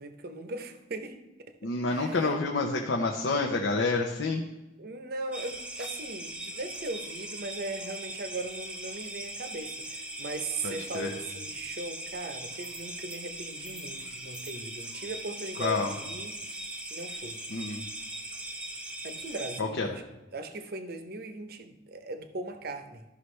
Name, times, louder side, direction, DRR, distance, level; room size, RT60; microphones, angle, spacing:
voice 1, 0.0-2.3 4.8-16.4 16.9-17.4 19.0-20.0 20.3-23.0, right 2 dB, 55° right, 8 dB, 0.7 m, -39 dB
voice 2, 1.6-4.4 10.6-11.1 15.6-15.9 17.5-17.9 19.6-19.9, left 3 dB, 85° left, 0 dB, 0.8 m, -28 dB
sound 1, 5.3-19.6, right 1 dB, 5° right, 0.7 m, -40 dB
13.0 x 5.7 x 3.2 m, 1.0 s
head